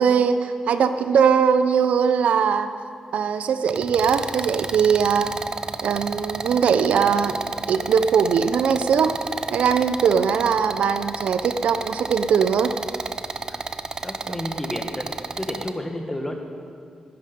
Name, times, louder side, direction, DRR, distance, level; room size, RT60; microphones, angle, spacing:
voice 1, 0.0-2.7 3.1-5.3 5.8-7.3 7.7-9.2 9.5-12.7 14.3-14.4, right 6 dB, 85° right, 10 dB, 0.7 m, -20 dB
sound 1, 3.7-15.7, right 4 dB, 35° right, 0.6 m, -31 dB
voice 2, 14.0-15.1 15.4-16.5, left 1 dB, 10° left, 3 dB, 1.7 m, -31 dB
19.0 x 12.0 x 5.4 m, 2.3 s
wide cardioid pair, 110°, 2 cm